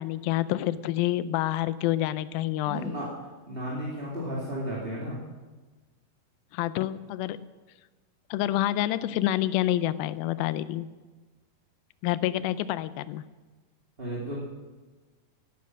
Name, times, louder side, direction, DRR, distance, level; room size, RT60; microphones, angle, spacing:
voice 1, 0.0-2.9 6.5-7.5 8.3-10.9 12.0-13.2, left 14 dB, 90° left, 15 dB, 2.4 m, -28 dB
voice 2, 2.7-3.1 3.5-5.2 14.0-14.4, equal, 20° right, -5 dB, 2.2 m, -33 dB
17.5 x 10.0 x 6.3 m, 1.3 s
omnidirectional pair, 4.1 m